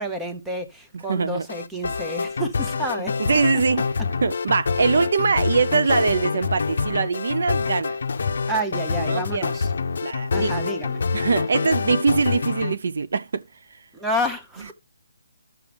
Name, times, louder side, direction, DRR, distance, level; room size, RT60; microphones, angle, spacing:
voice 1, 0.0-3.2 3.5-3.6 8.5-9.7 10.3-11.0 13.9-14.7, equal, 5° right, 0.7 m, -29 dB
voice 2, 1.1-1.5 3.2-3.9 4.2-8.0 9.0-9.5 10.0-10.5 11.1-13.4, right 4 dB, 60° right, 0.5 m, -22 dB
sound 1, 1.5-12.8, left 5 dB, 60° left, 0.6 m, -26 dB
12.5 x 6.0 x 3.4 m
hypercardioid pair, 170°, 0 cm